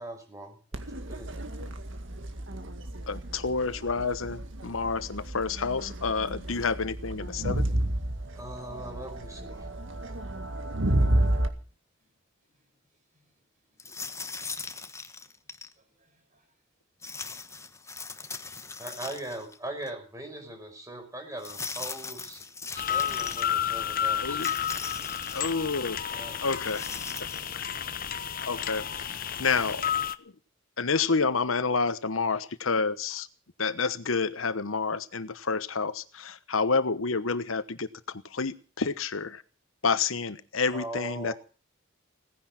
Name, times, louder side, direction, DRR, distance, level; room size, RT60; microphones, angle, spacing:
voice 1, 0.0-1.3 8.4-9.7 18.8-22.4 22.7-24.4 26.1-26.4 40.7-41.3, right 1 dB, 15° right, 4 dB, 5.3 m, -40 dB
Crowd, 0.7-11.5, right 1 dB, 65° right, 2.0 m, -31 dB
voice 2, 1.0-2.3 4.8-4.9 12.5-12.6 13.1-13.3 13.7-14.3 14.9-15.0 15.8-16.5, right 1 dB, 40° right, 4 dB, 6.0 m, -71 dB
voice 3, 3.1-7.6 24.2-24.5 25.3-26.0 26.4-26.9 27.5-27.6 28.5-30.3 30.8-33.3 33.6-37.9 38.3-39.4 39.8-41.3, left 4 dB, 85° left, 14 dB, 1.1 m, -29 dB
sound 1, 13.8-15.7 17.0-19.6 19.9-20.0 21.4-23.4 24.3-25.6 26.5-27.5, left 4 dB, 15° left, 1.1 m, -40 dB
sound 2, 22.8-30.1, left 9 dB, 45° left, 0.9 m, -31 dB
17.5 x 10.5 x 7.5 m, 0.37 s
head